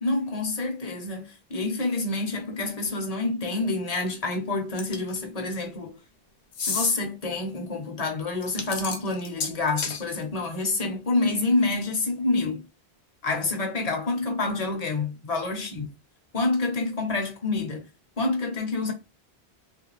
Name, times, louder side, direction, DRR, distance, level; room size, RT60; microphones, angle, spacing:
voice 1, 0.0-6.0 6.6-12.6 13.2-15.9 16.3-17.9 18.2-18.9, left 3 dB, 40° left, 0.8 m, -27 dB
sound 1, 4.8-5.2 6.5-7.0 8.4-10.0, left 5 dB, 80° left, 1.0 m, -30 dB
3.2 x 2.5 x 3.1 m
omnidirectional pair, 1.1 m